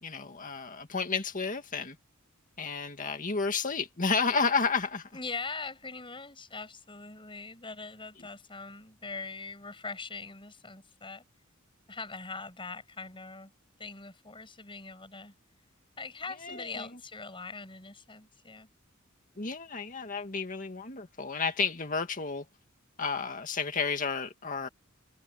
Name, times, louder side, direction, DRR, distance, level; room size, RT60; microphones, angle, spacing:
voice 1, 0.0-2.0 2.6-5.1 16.4-16.9 19.4-22.5 23.0-24.7, left 5 dB, 40° left, 2.1 m, -31 dB
voice 2, 5.1-11.2 11.9-13.5 13.8-15.3 16.0-18.7, left 4 dB, 25° left, 7.8 m, -42 dB
head